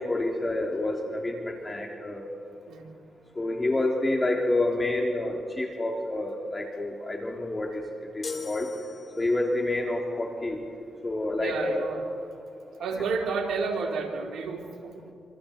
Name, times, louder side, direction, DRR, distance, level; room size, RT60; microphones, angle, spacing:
voice 1, 0.0-2.3 3.4-8.7 9.2-10.6 11.0-11.8, left 2 dB, 30° left, 1 dB, 3.0 m, -28 dB
sound 1, 8.2-9.6, left 4 dB, 50° left, 2.9 m, -39 dB
voice 2, 11.4-12.3 12.8-15.0, right 4 dB, 80° right, 0 dB, 3.5 m, -31 dB
26.5 x 26.5 x 4.3 m, 2.6 s
supercardioid pair, 55°, 0 cm